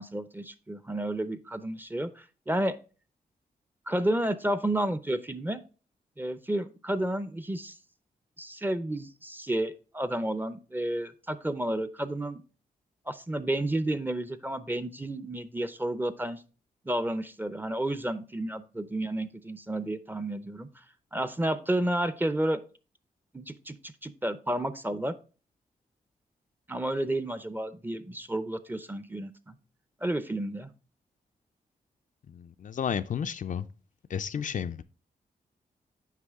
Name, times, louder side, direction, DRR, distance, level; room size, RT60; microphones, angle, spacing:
voice 1, 0.0-2.8 3.9-5.6 6.2-7.7 8.4-12.4 13.1-16.4 16.9-20.7 21.1-22.6 23.3-25.2 26.7-29.6 30.0-30.7, right 1 dB, 10° right, 0.6 m, -31 dB
voice 2, 32.3-33.7 34.1-34.8, left 8 dB, 55° left, 0.4 m, -32 dB
8.3 x 5.0 x 3.6 m
cardioid pair, 65°, 16 cm